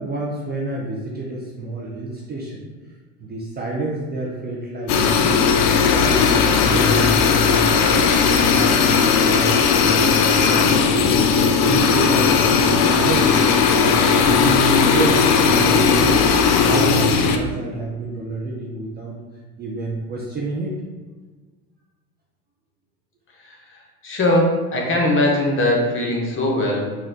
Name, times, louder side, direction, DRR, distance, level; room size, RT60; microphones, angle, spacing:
voice 1, 0.0-2.7 3.2-5.5 5.9-8.0 8.4-11.2 11.6-13.3 13.7-16.2 16.6-19.2 19.6-20.8, right 2 dB, 25° right, -4 dB, 0.4 m, -28 dB
sound 1, 4.9-17.4, left 6 dB, 60° left, 0.5 m, -17 dB
voice 2, 23.4-27.0, left 1 dB, 25° left, -1 dB, 0.7 m, -21 dB
4.0 x 2.2 x 2.5 m, 1.4 s
hypercardioid pair, 80°, 47 cm